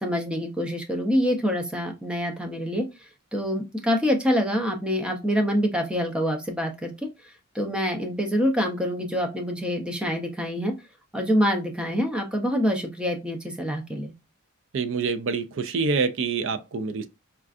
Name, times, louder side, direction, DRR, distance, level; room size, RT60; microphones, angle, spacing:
voice 1, 0.0-2.9 3.3-6.9 7.5-10.7 11.1-14.1, equal, 5° right, 0.5 m, -26 dB
voice 2, 14.7-17.1, right 4 dB, 55° right, 0.4 m, -26 dB
4.4 x 2.4 x 2.5 m
head